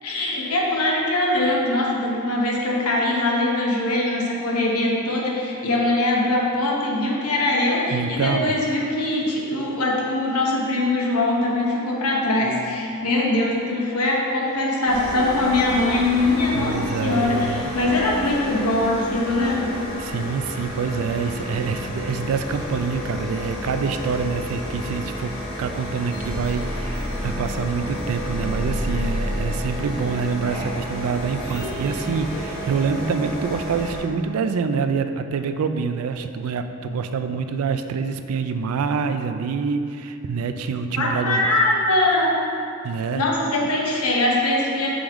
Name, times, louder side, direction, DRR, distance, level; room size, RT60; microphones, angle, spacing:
voice 1, 0.0-19.7 41.0-42.3 43.1-44.9, left 2 dB, 80° left, -2 dB, 1.0 m, -22 dB
voice 2, 7.9-8.6 16.5-17.8 20.0-41.5 42.8-43.2, right 5 dB, 70° right, 8 dB, 0.3 m, -26 dB
sound 1, 14.9-34.0, left 1 dB, 25° left, 1.0 m, -32 dB
sound 2, 26.1-32.7, equal, 45° left, 1.2 m, -31 dB
5.2 x 5.1 x 3.5 m, 2.5 s
head